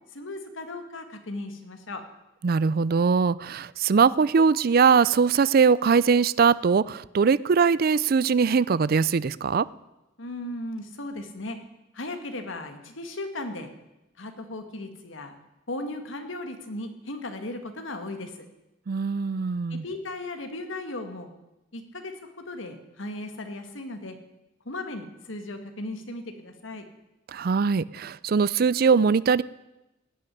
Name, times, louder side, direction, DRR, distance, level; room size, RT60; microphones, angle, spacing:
voice 1, 0.1-2.0 10.2-11.6 11.9-13.7 14.2-15.4 15.7-18.5 19.7-21.3 21.7-24.2 24.7-26.9, left 2 dB, 90° left, 7 dB, 1.8 m, -36 dB
voice 2, 2.4-9.7 18.9-19.8 27.3-29.4, right 5 dB, 50° right, 19 dB, 0.4 m, -21 dB
17.5 x 6.3 x 10.0 m, 0.96 s
head